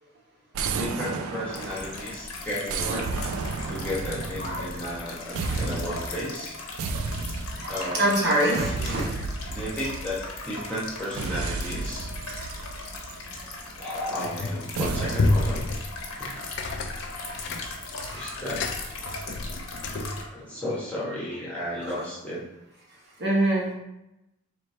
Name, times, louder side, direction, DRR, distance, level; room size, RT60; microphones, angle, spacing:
sound 1, 0.5-2.1 2.7-5.0 5.4-6.2 6.8-7.8 8.6-10.4 11.2-13.6 14.8-15.5, right 4 dB, 80° right, 0.4 m, -32 dB
voice 1, 0.8-3.3 3.7-6.6 7.7-8.2 8.6-9.0 9.5-12.1 13.8-15.6 16.2-16.4 18.1-18.6 20.3-22.4, left 1 dB, 5° left, -8 dB, 1.1 m, -33 dB
sound 2, 1.5-20.2, left 3 dB, 85° left, 0.9 m, -39 dB
voice 2, 4.4-4.9 6.9-7.0 7.5-9.0 18.0-18.3 19.9-20.2 20.5-20.6 21.8-21.9 23.2-23.7, right 1 dB, 50° right, -4 dB, 1.0 m, -26 dB
sound 3, 14.2-14.7 15.1-20.3, left 2 dB, 55° left, 0.4 m, -29 dB
3.2 x 3.1 x 4.2 m, 0.92 s
head